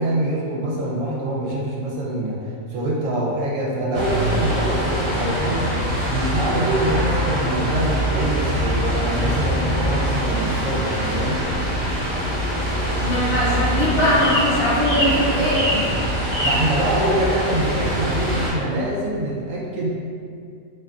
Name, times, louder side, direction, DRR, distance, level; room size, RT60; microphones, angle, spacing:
voice 1, 0.0-2.4 2.7-5.7 6.1-11.4 16.4-19.9, right 1 dB, 75° right, -4 dB, 1.0 m, -24 dB
sound 1, 3.9-18.5, equal, 10° right, 0.5 m, -24 dB
voice 2, 13.0-15.7, equal, 55° left, -8 dB, 0.8 m, -21 dB
sound 2, 13.0-13.8 14.2-14.5 14.8-15.2 15.5-15.9 16.3-16.7, equal, 45° right, 0.8 m, -25 dB
2.5 x 2.4 x 2.2 m, 2.4 s
omnidirectional pair, 1.4 m